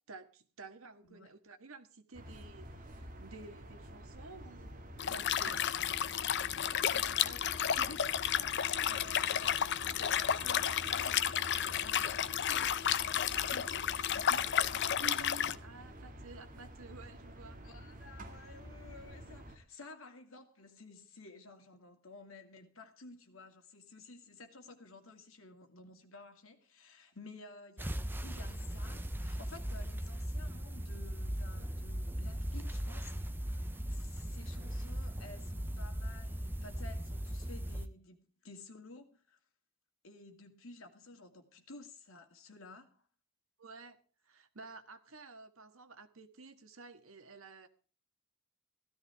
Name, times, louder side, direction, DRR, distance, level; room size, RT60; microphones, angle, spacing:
voice 1, 0.1-4.7 5.1-5.6 15.0-17.6 43.6-44.0 44.3-47.7, right 3 dB, 90° right, 1.6 m, -51 dB
sound 1, 2.1-19.6, equal, 40° right, 2.3 m, -50 dB
Liquid, 5.0-15.5, left 9 dB, 60° left, 0.7 m, -32 dB
voice 2, 6.9-9.7 10.4-14.6 17.6-39.4 40.0-43.0, left 3 dB, 75° left, 2.4 m, -53 dB
sound 2, 27.8-37.9, equal, 10° right, 0.8 m, -38 dB
16.0 x 13.0 x 3.6 m
head